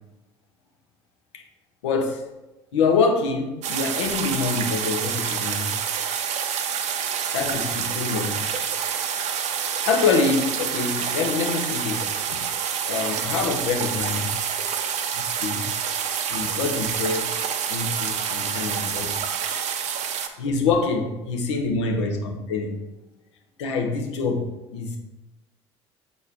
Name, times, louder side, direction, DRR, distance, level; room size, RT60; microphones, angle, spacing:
voice 1, 1.8-2.2 2.7-5.7 7.3-8.6 9.8-12.4 12.9-14.3 15.4-15.6 16.3-17.3 17.7-19.2 20.4-22.8 23.6-25.0, left 4 dB, 75° left, 3 dB, 0.9 m, -25 dB
sound 1, 3.6-20.3, right 7 dB, 50° right, 0.7 m, -27 dB
6.8 x 4.2 x 3.5 m, 1.0 s
hypercardioid pair, 60°, 15 cm